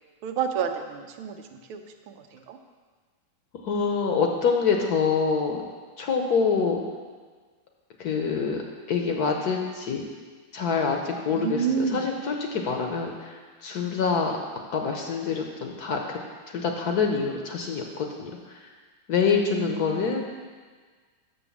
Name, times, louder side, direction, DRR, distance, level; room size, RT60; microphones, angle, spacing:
voice 1, 0.2-2.6 11.3-12.1 19.3-20.2, right 7 dB, 90° right, 6 dB, 1.6 m, -30 dB
voice 2, 3.6-5.6 6.0-6.8 8.0-8.6 8.9-10.0 10.5-11.6 11.9-14.3 14.7-16.2 16.5-18.7 19.1-20.2, left 5 dB, 60° left, 2 dB, 1.1 m, -26 dB
7.2 x 6.3 x 7.1 m, 1.5 s
omnidirectional pair, 2.2 m